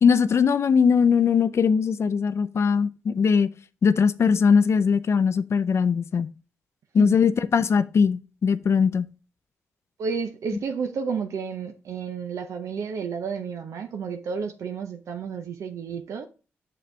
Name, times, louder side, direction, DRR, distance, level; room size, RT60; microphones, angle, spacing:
voice 1, 0.0-3.5 3.8-6.3 6.9-9.1, left 6 dB, 55° left, 0.5 m, -20 dB
voice 2, 10.0-16.3, right 6 dB, 70° right, 0.7 m, -31 dB
6.8 x 6.4 x 3.2 m
supercardioid pair, 40°, 5 cm